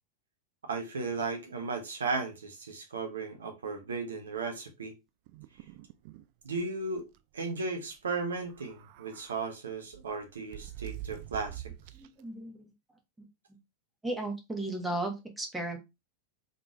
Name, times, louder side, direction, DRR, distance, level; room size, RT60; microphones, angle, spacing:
voice 1, 0.6-4.9 6.4-7.1 7.3-11.6, right 4 dB, 70° right, 1.1 m, -35 dB
sound 1, 5.3-6.3 6.6-6.7 7.0-7.2 8.4-9.4 9.9-12.2, right 13 dB, 45° right, 0.3 m, -45 dB
voice 2, 11.9-12.7 13.2-13.3 14.0-15.8, right 1 dB, 10° right, 1.2 m, -35 dB
3.9 x 3.6 x 2.5 m
figure-of-eight pair, 90°, 0 cm